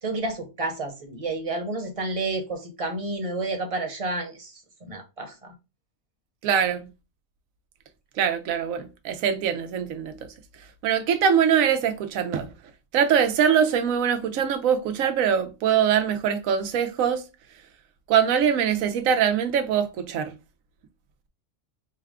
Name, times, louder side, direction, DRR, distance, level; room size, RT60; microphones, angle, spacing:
voice 1, 0.0-4.5 4.8-5.5, right 2 dB, 30° right, 0.9 m, -30 dB
voice 2, 6.4-6.9 8.2-10.3 10.8-12.5 12.9-17.2 18.1-20.3, right 8 dB, 80° right, 1.1 m, -23 dB
5.6 x 2.2 x 3.6 m
omnidirectional pair, 1.4 m